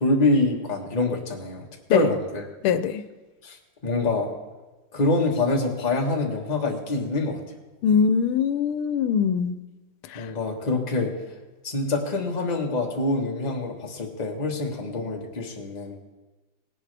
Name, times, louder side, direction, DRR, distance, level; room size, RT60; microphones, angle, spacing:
voice 1, 0.0-2.4 3.4-3.6 3.8-4.3 4.9-7.4 10.1-11.2 11.6-16.0, left 2 dB, 25° left, 0 dB, 1.3 m, -25 dB
voice 2, 2.6-3.0 7.8-9.6 10.1-10.3, left 7 dB, 85° left, 11 dB, 1.5 m, -22 dB
18.5 x 10.5 x 3.4 m, 1.2 s
omnidirectional pair, 2.3 m